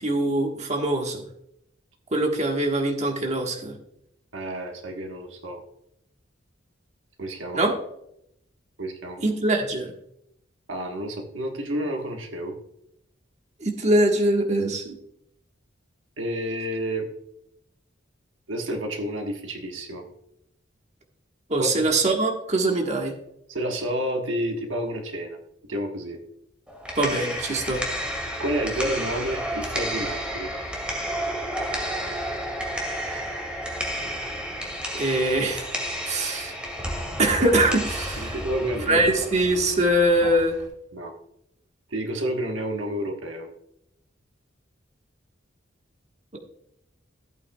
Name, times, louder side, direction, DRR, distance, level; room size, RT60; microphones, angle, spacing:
voice 1, 0.0-1.2 2.1-3.7 7.5-7.7 9.2-9.9 13.6-15.0 21.5-23.1 27.0-27.8 34.9-35.7 36.0-36.5 37.2-38.4 38.9-40.6, right 1 dB, 35° right, 1 dB, 1.4 m, -23 dB
voice 2, 4.3-5.6 7.2-7.6 8.8-9.2 10.7-12.6 16.2-17.1 18.5-20.0 21.6-21.8 23.5-25.4 25.7-26.2 28.4-30.5 33.1-33.3 38.2-39.1 40.2-40.4 40.9-41.1 41.9-43.5, right 1 dB, 75° right, 3 dB, 1.3 m, -30 dB
sound 1, 26.7-40.7, equal, 5° right, 2.2 m, -31 dB
14.5 x 8.7 x 2.3 m, 0.78 s
head